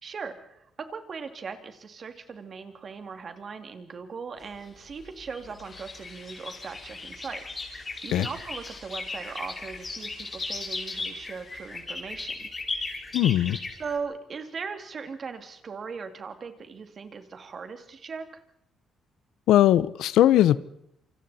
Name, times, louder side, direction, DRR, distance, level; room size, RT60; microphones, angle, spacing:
voice 1, 0.0-12.5 13.8-18.4, right 5 dB, 45° right, 7 dB, 2.5 m, -39 dB
sound 1, 4.4-14.0, left 3 dB, 30° left, 4.9 m, -37 dB
sound 2, 5.6-11.8, left 5 dB, 55° left, 7.3 m, -53 dB
voice 2, 13.1-13.6 19.5-20.6, left 12 dB, 85° left, 17 dB, 0.7 m, -19 dB
27.5 x 25.5 x 4.3 m, 0.76 s
cardioid pair, 90°, 0 cm